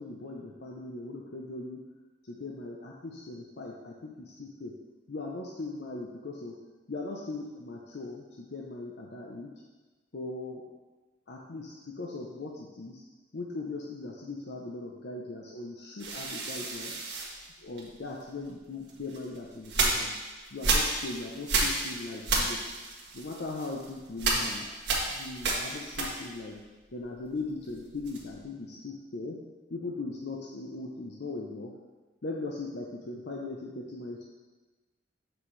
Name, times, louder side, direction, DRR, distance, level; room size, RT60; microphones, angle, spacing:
voice 1, 0.0-1.8 2.2-4.7 5.1-6.6 6.9-9.5 10.1-10.6 11.3-13.0 13.3-16.9 17.6-20.1 20.5-22.6 23.1-24.7 25.0-26.6 26.9-29.4 29.7-31.7 32.2-34.2, left 3 dB, 65° left, -1 dB, 0.7 m, -39 dB
sound 1, 16.0-18.2 18.9-26.5 26.8-28.4, right 3 dB, 75° right, 1.5 m, -31 dB
7.3 x 6.0 x 3.2 m, 1.2 s
head